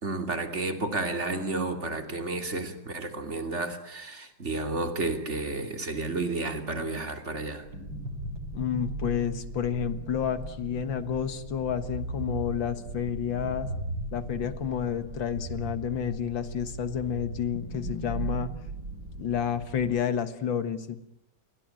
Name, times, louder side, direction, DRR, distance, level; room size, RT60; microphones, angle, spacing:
voice 1, 0.0-7.6, right 2 dB, 35° right, 7 dB, 3.2 m, -31 dB
sound 1, 7.6-20.0, right 1 dB, 70° right, 6.4 m, -37 dB
voice 2, 8.5-13.7 14.1-18.5 19.2-21.0, left 8 dB, 80° left, 12 dB, 2.3 m, -30 dB
29.0 x 22.5 x 9.0 m, 0.77 s
omnidirectional pair, 2.1 m